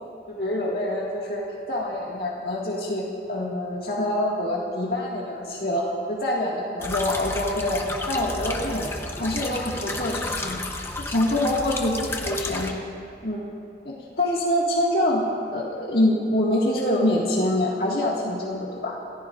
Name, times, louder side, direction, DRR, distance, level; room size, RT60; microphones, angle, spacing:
voice 1, 0.3-1.4 1.7-8.9 9.2-10.6 11.0-12.8 13.2-13.4 13.8-15.2 15.5-18.9, left 1 dB, 60° left, -4 dB, 1.9 m, -25 dB
sound 1, 6.8-12.7, left 2 dB, 15° left, 0.8 m, -32 dB
28.5 x 15.5 x 2.5 m, 2.6 s
head